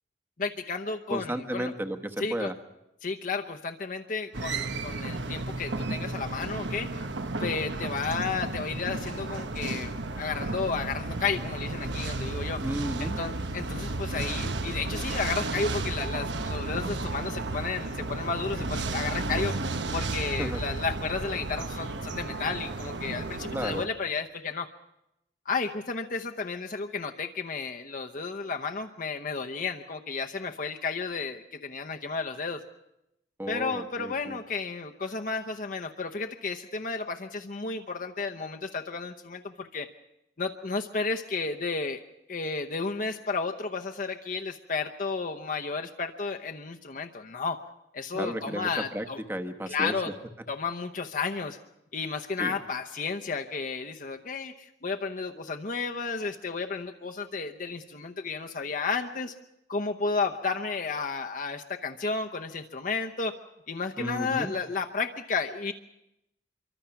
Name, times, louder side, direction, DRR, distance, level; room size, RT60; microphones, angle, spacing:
voice 1, 0.4-1.7 2.2-2.5 3.0-6.9 7.4-12.6 13.0-19.5 19.9-24.7 25.5-32.6 33.5-39.9 40.4-42.0 42.3-47.6 47.9-49.2 49.7-50.1 50.5-51.6 51.9-59.3 59.7-63.3 63.7-65.7, left 4 dB, 45° left, 3 dB, 0.8 m, -32 dB
voice 2, 1.1-2.5 12.6-13.2 20.2-20.6 23.5-23.9 33.4-34.4 48.1-50.0 52.4-52.6 64.0-64.5, right 1 dB, 10° right, 6 dB, 1.1 m, -33 dB
sound 1, 4.3-23.9, right 2 dB, 85° right, 1.2 m, -33 dB
26.5 x 24.0 x 5.9 m, 0.88 s
head